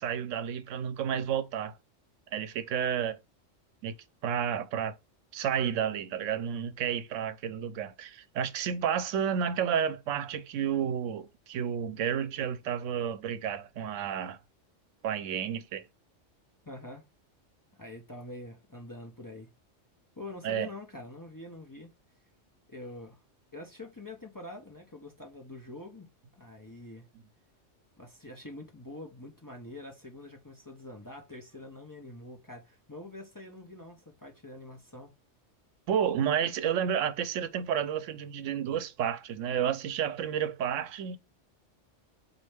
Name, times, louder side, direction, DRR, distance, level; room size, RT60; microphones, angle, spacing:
voice 1, 0.0-1.8 2.3-3.2 3.8-3.9 4.2-5.0 5.3-14.4 15.0-15.8 20.4-20.7 35.9-41.2, right 8 dB, 85° right, 0.9 m, -31 dB
voice 2, 16.6-17.0 17.8-19.5 20.2-21.9 22.7-23.2 23.5-26.1 26.4-27.1 28.0-35.1, left 2 dB, 20° left, 0.6 m, -45 dB
4.2 x 2.7 x 3.2 m
omnidirectional pair, 1.3 m